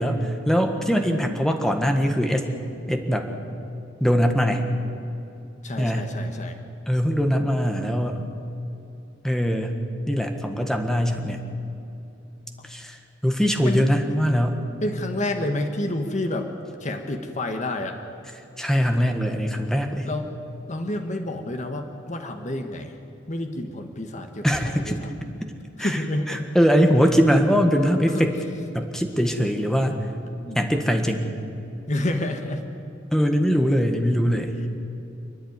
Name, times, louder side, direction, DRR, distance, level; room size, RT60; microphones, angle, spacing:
voice 1, 0.0-2.5 2.9-3.3 4.0-4.7 5.8-6.1 6.9-8.2 9.2-9.8 10.1-11.4 12.7-13.0 13.2-14.6 18.6-20.1 24.4-25.0 25.8-26.0 26.3-28.3 28.7-30.0 30.5-31.3 33.1-34.6, equal, 5° left, 4 dB, 1.5 m, -22 dB
voice 2, 5.6-6.6 13.6-13.9 14.8-16.5 16.8-18.0 20.0-20.3 20.7-22.9 23.3-25.1 25.8-26.5 27.7-28.3 30.3-30.8 31.9-32.6, left 1 dB, 40° left, 5 dB, 1.4 m, -29 dB
29.0 x 10.5 x 9.7 m, 2.8 s
head